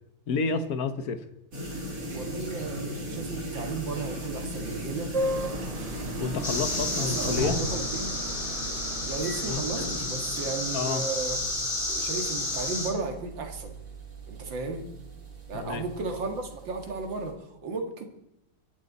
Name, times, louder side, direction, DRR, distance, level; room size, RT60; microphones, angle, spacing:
voice 1, 0.3-1.2 6.2-7.6 9.4-9.6 10.7-11.0 15.5-15.8, left 5 dB, 55° left, 10 dB, 1.4 m, -29 dB
sound 1, 1.5-17.3, right 1 dB, 45° right, 4.2 m, -38 dB
voice 2, 2.1-5.1 7.0-8.2 9.0-11.4 11.9-13.7 14.3-14.9 15.5-18.1, right 3 dB, 75° right, 4 dB, 2.6 m, -34 dB
sound 2, 5.1-10.1, right 1 dB, 25° right, 0.9 m, -35 dB
sound 3, 6.4-12.9, left 2 dB, 25° left, 2.5 m, -31 dB
23.0 x 11.0 x 4.1 m, 0.90 s
omnidirectional pair, 2.1 m